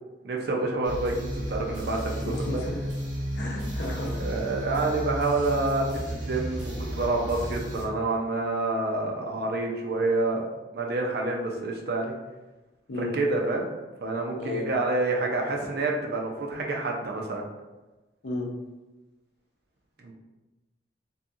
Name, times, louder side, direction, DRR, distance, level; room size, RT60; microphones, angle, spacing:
voice 1, 0.2-2.2 2.5-2.6 4.1-10.4 10.7-12.1 13.0-13.7 14.0-17.4 20.0-20.1, right 2 dB, 60° right, 0 dB, 0.5 m, -28 dB
sound 1, 0.8-7.8, equal, 80° right, 1.1 m, -33 dB
voice 2, 2.2-2.8 3.3-4.2 12.9-13.2 14.4-14.7 16.5-16.7 18.2-18.5, left 2 dB, 75° left, -1 dB, 0.6 m, -33 dB
2.7 x 2.6 x 2.4 m, 1.1 s
head